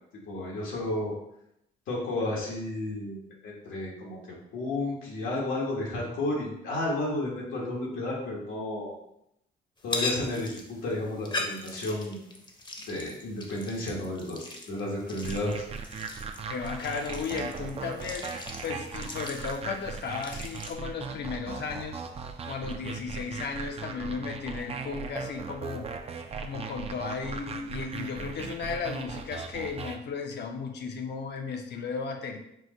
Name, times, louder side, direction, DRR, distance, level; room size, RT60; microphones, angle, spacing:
voice 1, 0.3-1.1 1.9-4.2 4.5-9.0 9.8-12.2 12.9-15.6, left 1 dB, 85° left, -3 dB, 1.4 m, -32 dB
sound 1, 9.8-20.7, left 2 dB, 25° left, 0.7 m, -39 dB
sound 2, 15.2-30.0, right 5 dB, 30° right, 0.4 m, -38 dB
voice 2, 16.5-22.0 22.5-25.9 26.4-32.4, left 5 dB, 60° left, 4 dB, 0.7 m, -35 dB
4.7 x 2.1 x 3.7 m, 0.78 s
cardioid pair, 90°, 20 cm